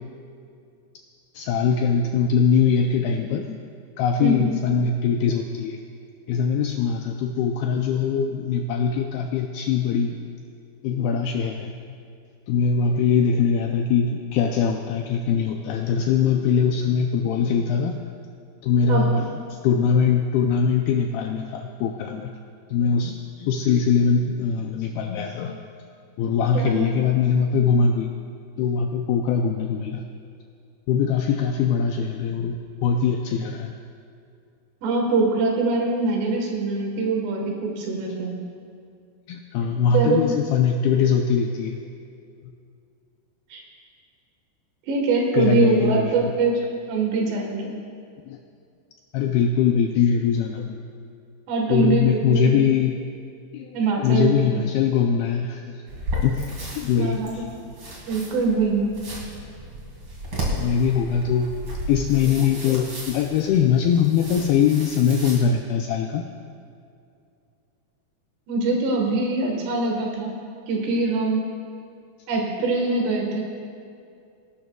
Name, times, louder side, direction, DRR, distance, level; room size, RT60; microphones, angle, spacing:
voice 1, 1.3-3.6 4.0-5.8 6.3-10.2 10.8-11.8 12.5-18.0 18.6-19.3 19.6-22.3 22.7-25.6 26.2-28.1 28.6-30.0 30.9-33.8 39.3-41.8 45.4-46.3 48.3-48.4 49.1-50.8 51.7-53.0 53.5-55.8 56.2-57.4 60.6-61.5 61.9-66.3, left 6 dB, 85° left, 3 dB, 2.2 m, -22 dB
voice 2, 4.2-4.6 18.9-19.2 26.5-26.9 34.8-38.4 39.9-40.3 43.5-43.6 44.9-47.8 51.5-52.6 53.7-54.6 57.0-57.4 58.1-59.0 68.5-70.4 70.7-71.5 72.3-73.4, right 3 dB, 75° right, 0 dB, 3.6 m, -23 dB
sound 1, 55.9-65.4, equal, 35° right, 2.3 m, -34 dB
19.0 x 12.0 x 2.3 m, 2.4 s
omnidirectional pair, 4.9 m